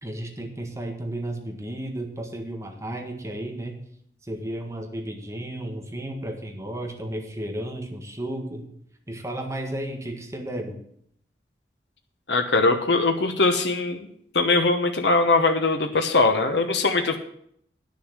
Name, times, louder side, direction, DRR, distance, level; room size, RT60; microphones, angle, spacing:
voice 1, 0.0-3.8 4.2-8.7 9.1-10.8, right 1 dB, 15° right, 2 dB, 1.6 m, -33 dB
voice 2, 12.3-14.1 14.3-17.2, left 3 dB, 85° left, 5 dB, 1.0 m, -21 dB
10.0 x 6.7 x 8.0 m, 0.68 s
head